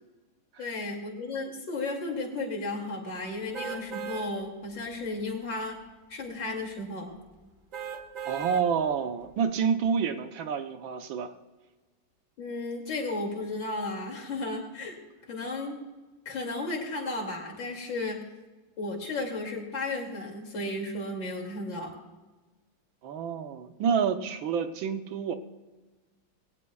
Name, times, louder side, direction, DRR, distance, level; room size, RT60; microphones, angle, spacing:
voice 1, 0.6-5.8 6.1-7.1 12.4-15.0 15.3-15.8 16.2-18.2 18.8-21.9, left 2 dB, 70° left, 1 dB, 3.3 m, -34 dB
sound 1, 3.5-4.3 4.8-4.9 7.7-8.7 9.2-9.3, right 8 dB, 45° right, 1.6 m, -37 dB
voice 2, 8.3-11.3 23.0-25.3, right 7 dB, 80° right, 8 dB, 1.7 m, -28 dB
20.5 x 18.5 x 2.3 m, 1.2 s
omnidirectional pair, 2.1 m